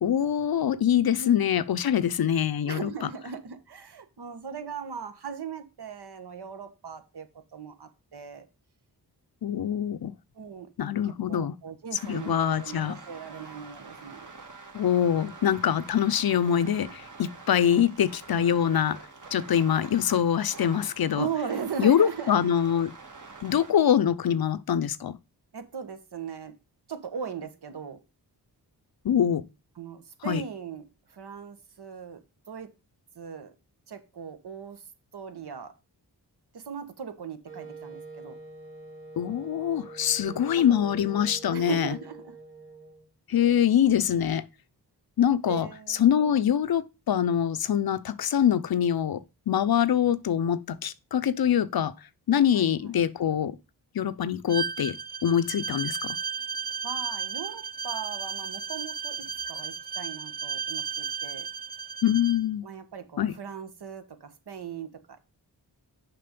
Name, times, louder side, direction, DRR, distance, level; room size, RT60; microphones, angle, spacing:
voice 1, 0.0-2.9 9.4-10.1 10.8-11.5 12.1-13.0 14.7-19.0 19.3-21.3 21.8-22.9 23.4-25.2 29.0-29.4 30.3-30.4 39.2-42.0 43.3-44.4 45.2-49.2 49.5-51.9 52.3-53.6 53.9-55.0 55.2-56.1 62.0-62.6 63.2-63.3, left 9 dB, 60° left, 0.6 m, -24 dB
voice 2, 2.6-8.5 10.3-10.7 11.0-14.3 21.1-22.3 25.5-26.6 26.9-28.0 29.7-32.2 32.5-32.7 33.1-33.5 33.9-34.8 35.1-35.7 36.5-38.4 40.2-41.2 41.5-42.3 45.5-46.5 52.5-52.9 56.8-61.5 62.6-65.2, right 7 dB, 70° right, 1.3 m, -39 dB
sound 1, 12.0-23.7, right 4 dB, 45° right, 1.7 m, -46 dB
Wind instrument woodwind instrument, 37.4-43.1, right 3 dB, 85° right, 3.3 m, -45 dB
Bowed string instrument, 54.5-62.4, right 6 dB, 25° right, 0.6 m, -34 dB
6.8 x 5.2 x 5.2 m
cardioid pair, 55°, 41 cm